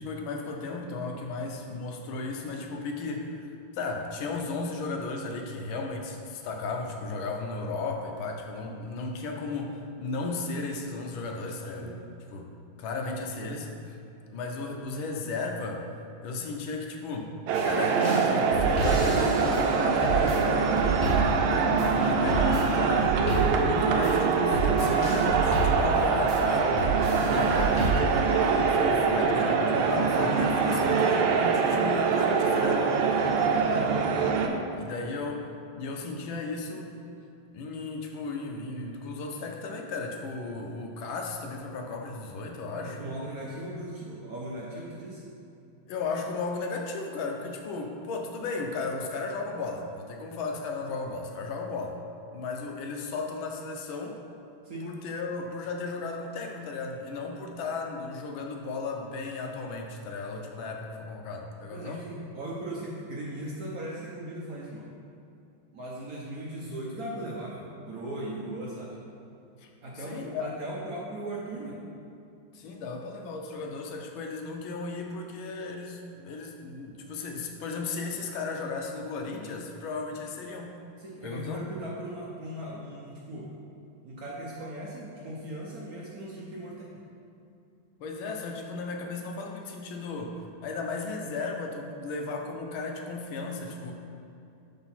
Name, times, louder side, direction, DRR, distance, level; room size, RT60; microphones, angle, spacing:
voice 1, 0.0-3.5 3.7-12.0 12.3-12.5 12.8-14.0 14.3-15.9 16.2-17.3 17.6-20.9 21.9-23.3 23.5-26.7 27.2-32.9 34.7-35.5 35.7-37.0 37.5-43.1 45.9-52.0 52.3-54.2 54.8-62.1 69.6-70.5 72.5-80.8 81.2-81.6 88.0-93.9, left 3 dB, 75° left, 2 dB, 1.4 m, -35 dB
sound 1, 17.5-27.9, right 3 dB, 40° left, 1.7 m, -30 dB
sound 2, 17.5-34.5, right 5 dB, 80° right, 1.4 m, -24 dB
voice 2, 26.8-27.9 33.2-33.4 42.8-45.2 54.6-54.9 61.7-64.9 65.7-69.0 69.8-71.8 81.0-83.5 84.0-86.9, right 1 dB, 60° right, -4 dB, 1.0 m, -38 dB
6.1 x 3.9 x 5.7 m, 2.7 s
omnidirectional pair, 2.3 m